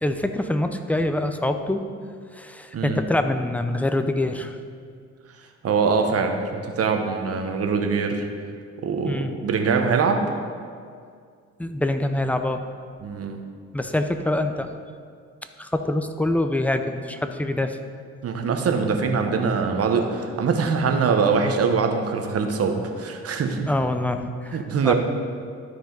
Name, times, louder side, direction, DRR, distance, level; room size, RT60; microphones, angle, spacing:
voice 1, 0.0-1.8 2.3-4.6 9.0-9.3 11.6-12.6 13.7-14.7 15.6-17.8 23.7-24.9, left 1 dB, 5° left, 7 dB, 0.5 m, -25 dB
voice 2, 5.6-8.3 8.8-10.2 13.0-13.4 18.2-23.7 24.5-24.9, right 5 dB, 50° right, 4 dB, 1.0 m, -23 dB
13.0 x 4.8 x 3.9 m, 2.2 s
cardioid pair, 90°, 30 cm